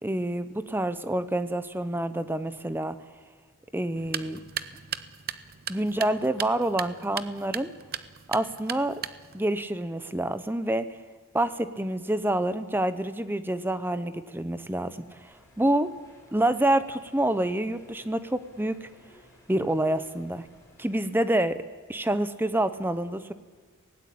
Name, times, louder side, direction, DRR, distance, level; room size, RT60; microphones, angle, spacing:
voice 1, 0.0-3.0 3.7-4.4 5.7-7.7 8.3-9.0 9.3-10.8 11.3-15.0 15.6-15.9 16.3-18.9 19.5-20.5 20.8-21.6 21.9-23.3, right 1 dB, 10° right, 12 dB, 0.8 m, -27 dB
sound 1, 4.0-9.5, right 9 dB, 45° right, 0.7 m, -37 dB
sound 2, 14.9-21.4, left 1 dB, 15° left, 5.0 m, -58 dB
27.5 x 18.0 x 8.6 m, 1.6 s
head